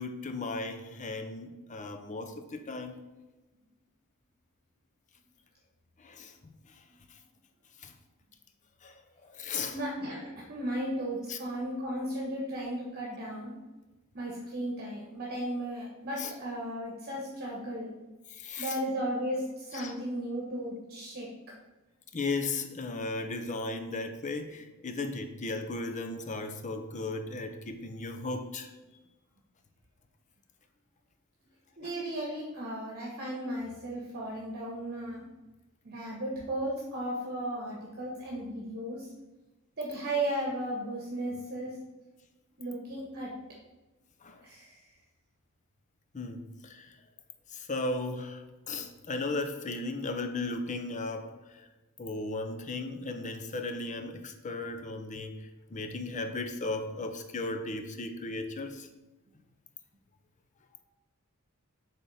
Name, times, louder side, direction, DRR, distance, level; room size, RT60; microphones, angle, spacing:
voice 1, 0.0-3.0 6.0-6.8 7.1-7.2 7.8-7.9 8.8-9.8 11.3-11.4 16.2-16.3 18.3-18.8 19.7-19.9 22.1-28.7 31.8-31.9 44.2-44.4 46.1-47.0 47.5-51.7 52.0-58.9 60.7-60.8, left 3 dB, 35° left, 7 dB, 0.6 m, -36 dB
voice 2, 9.7-13.5 14.1-17.9 18.6-21.3 31.8-35.2 35.8-39.1 39.8-41.7 42.6-43.3 44.4-44.9, right 1 dB, 45° right, -3 dB, 1.2 m, -35 dB
6.9 x 4.1 x 4.2 m, 1.1 s
head